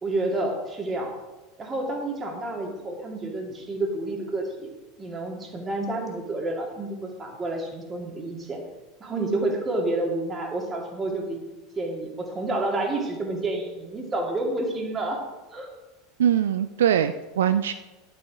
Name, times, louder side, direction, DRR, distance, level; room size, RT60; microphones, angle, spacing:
voice 1, 0.0-1.1 1.6-4.7 5.0-8.6 9.0-11.4 11.8-15.2 15.5-15.7, right 2 dB, 20° right, 1 dB, 2.4 m, -29 dB
voice 2, 16.2-17.7, right 9 dB, 65° right, 11 dB, 0.3 m, -22 dB
11.0 x 6.9 x 4.9 m, 1.2 s
figure-of-eight pair, 80°, 0 cm